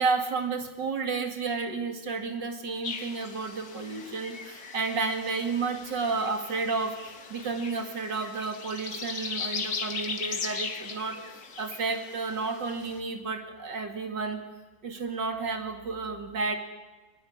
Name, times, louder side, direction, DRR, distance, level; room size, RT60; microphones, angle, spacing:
voice 1, 0.0-11.2 11.6-14.4 14.8-16.6, right 4 dB, 75° right, 6 dB, 3.1 m, -31 dB
sound 1, 2.8-13.0, left 5 dB, 55° left, 2.4 m, -38 dB
22.5 x 21.0 x 9.7 m, 1.2 s
omnidirectional pair, 1.9 m